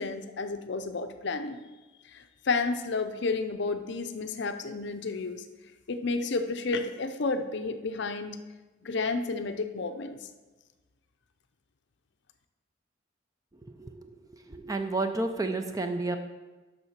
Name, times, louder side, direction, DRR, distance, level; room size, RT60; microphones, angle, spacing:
voice 1, 0.0-1.6 2.1-5.4 5.9-8.4 8.8-10.2, left 3 dB, 55° left, 8 dB, 0.6 m, -31 dB
voice 2, 13.8-14.1 14.5-16.2, right 2 dB, 15° right, 6 dB, 0.5 m, -31 dB
7.1 x 5.6 x 6.5 m, 1.2 s
head